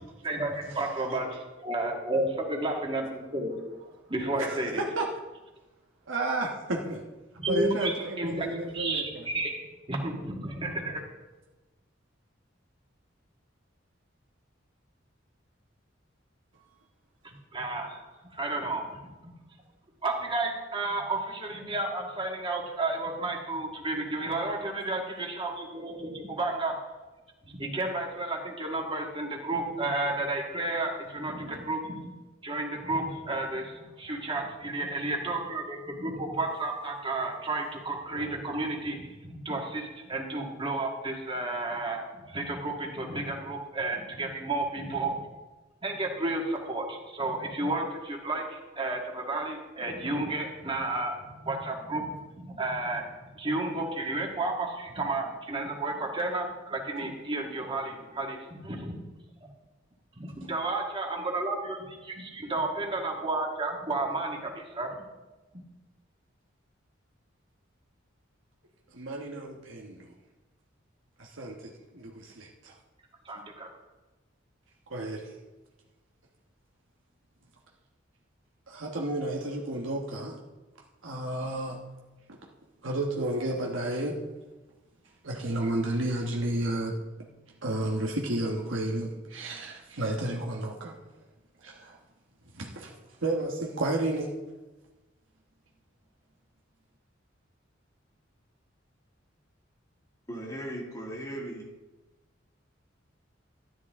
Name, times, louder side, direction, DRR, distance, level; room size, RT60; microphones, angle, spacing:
voice 1, 0.2-3.5 4.1-4.8 7.3-8.5 8.7-9.6 9.9-11.0 17.2-18.0 18.3-19.0 20.0-26.7 27.4-32.1 32.4-42.0 42.3-45.2 45.8-53.0 53.4-58.4 58.6-59.0 60.1-61.8 62.0-64.9 73.3-73.7, right 2 dB, 25° right, 0 dB, 1.9 m, -32 dB
voice 2, 4.4-5.0 6.1-7.0 7.5-9.3 68.9-70.1 71.2-72.7 74.9-75.3 78.7-80.4 81.0-81.8 82.3-82.4 82.8-84.2 85.2-86.9 87.6-91.0 91.6-92.0 92.5-92.9 93.2-94.3, right 1 dB, 80° right, 0 dB, 1.2 m, -32 dB
voice 3, 100.3-101.7, right 1 dB, 20° left, -2 dB, 2.1 m, -37 dB
12.5 x 11.0 x 3.6 m, 1.1 s
head